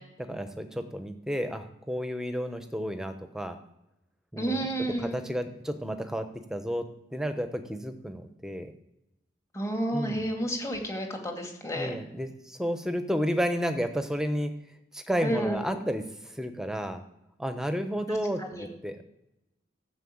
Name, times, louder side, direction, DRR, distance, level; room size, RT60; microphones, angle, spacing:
voice 1, 0.3-3.6 4.3-6.8 7.1-8.7 9.9-10.3 11.7-14.5 14.9-17.0 17.4-19.0, equal, 5° right, 8 dB, 0.9 m, -32 dB
voice 2, 4.4-5.2 9.5-12.0 15.2-15.8 18.4-18.7, right 1 dB, 15° left, 2 dB, 2.3 m, -31 dB
13.5 x 7.0 x 8.7 m, 0.89 s
head